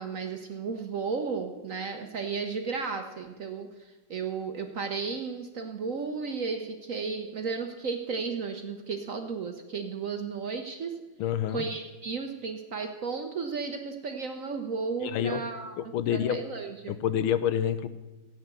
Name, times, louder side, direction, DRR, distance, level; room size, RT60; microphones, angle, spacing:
voice 1, 0.0-3.7 4.1-10.9 11.5-15.7 16.1-17.0, right 5 dB, 55° right, 5 dB, 0.9 m, -34 dB
voice 2, 11.2-11.6 15.0-15.4 15.8-16.4 16.9-17.9, left 9 dB, 90° left, 13 dB, 1.6 m, -28 dB
14.0 x 9.2 x 6.8 m, 1.1 s
omnidirectional pair, 2.2 m